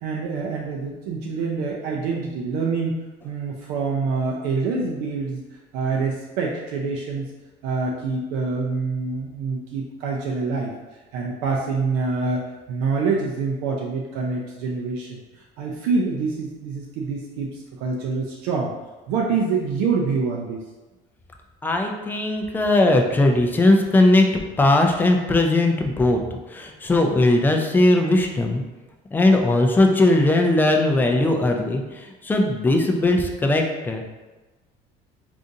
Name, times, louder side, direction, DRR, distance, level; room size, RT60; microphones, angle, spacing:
voice 1, 0.0-3.0 3.2-5.4 5.7-7.2 7.6-10.7 11.1-15.2 15.6-18.7 19.1-20.6, right 4 dB, 90° right, -2 dB, 0.5 m, -26 dB
voice 2, 21.6-24.3 24.6-26.2 26.5-28.6 29.1-34.0, left 2 dB, 10° left, 3 dB, 0.3 m, -19 dB
3.8 x 2.5 x 2.6 m, 1.2 s
cardioid pair, 135°, 17 cm